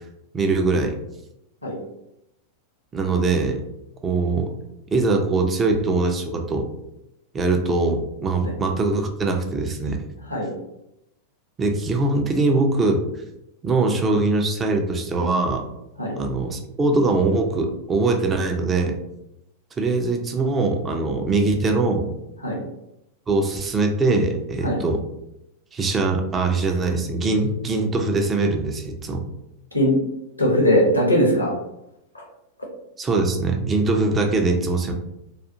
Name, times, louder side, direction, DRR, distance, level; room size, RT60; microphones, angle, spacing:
voice 1, 0.3-0.9 2.9-3.6 4.0-4.5 4.9-6.7 7.3-10.0 11.6-13.0 13.6-15.6 16.2-19.0 19.8-22.1 23.3-25.0 25.7-29.2 33.0-34.9, right 3 dB, 20° right, 3 dB, 0.4 m, -22 dB
voice 2, 30.4-31.5 32.1-32.2, equal, 85° left, -1 dB, 0.7 m, -20 dB
2.4 x 2.3 x 2.7 m, 0.85 s
figure-of-eight pair, 90°, 0 cm